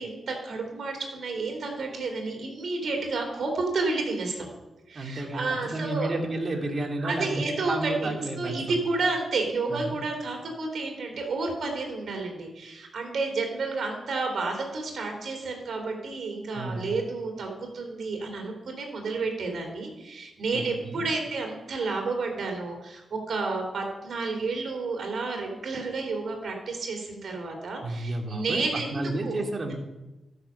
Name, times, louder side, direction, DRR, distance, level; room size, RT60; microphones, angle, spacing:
voice 1, 0.0-4.5 4.9-6.1 7.0-8.1 8.4-29.4, right 3 dB, 70° right, 2 dB, 3.3 m, -31 dB
voice 2, 4.9-7.3 7.7-8.7 9.7-10.0 16.5-16.9 20.5-21.1 27.8-29.7, right 2 dB, 45° right, 2 dB, 2.5 m, -32 dB
13.0 x 7.1 x 5.7 m, 1.0 s
cardioid pair, 55°, 0 cm